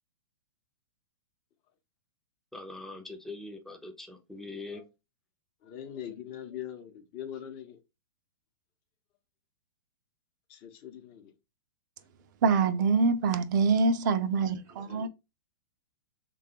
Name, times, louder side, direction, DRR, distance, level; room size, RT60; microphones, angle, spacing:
voice 1, 2.5-4.8, left 2 dB, 5° left, 0.5 m, -42 dB
voice 2, 5.6-7.8 10.5-11.3 14.6-15.1, left 10 dB, 40° left, 0.7 m, -42 dB
voice 3, 12.4-15.1, right 4 dB, 50° right, 0.4 m, -25 dB
3.2 x 2.3 x 2.8 m
hypercardioid pair, 110°, 12 cm